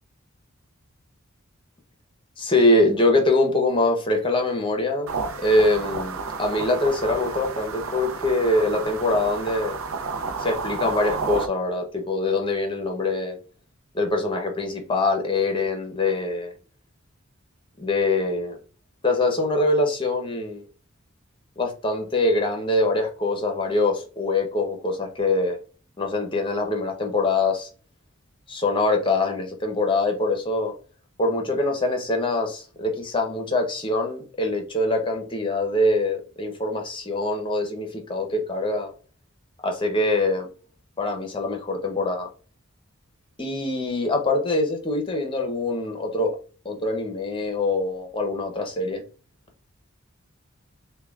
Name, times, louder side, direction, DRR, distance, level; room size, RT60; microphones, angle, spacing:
voice 1, 2.4-5.1 5.4-9.8 10.4-13.4 13.9-16.5 17.8-18.6 19.0-20.6 21.6-25.6 26.0-27.7 28.5-30.7 31.2-38.9 39.6-40.5 41.0-42.3 43.4-46.3 46.6-49.0, left 2 dB, 25° left, 3 dB, 0.8 m, -24 dB
sound 1, 5.1-11.5, right 5 dB, 80° right, 0.6 m, -31 dB
6.6 x 2.3 x 2.4 m, 0.39 s
head